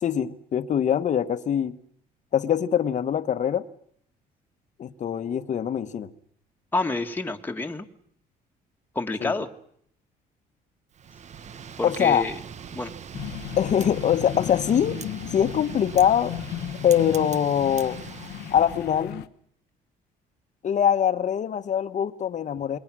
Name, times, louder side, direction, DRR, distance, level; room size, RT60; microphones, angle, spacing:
voice 1, 0.0-1.7 2.3-3.6 4.8-6.1 9.2-9.3 11.8-12.3 13.6-15.0 15.3-16.3 16.8-18.0 18.5-19.2 20.6-22.8, left 9 dB, 45° left, 1.3 m, -23 dB
voice 2, 6.7-7.8 8.9-9.5 11.8-12.3 12.7-12.9, left 2 dB, 10° left, 1.8 m, -28 dB
Wind, 10.9-19.1, right 7 dB, 45° right, 1.2 m, -41 dB
sound 1, 13.1-19.3, left 14 dB, 80° left, 1.1 m, -35 dB
28.0 x 21.5 x 6.2 m
cardioid pair, 110°, 17 cm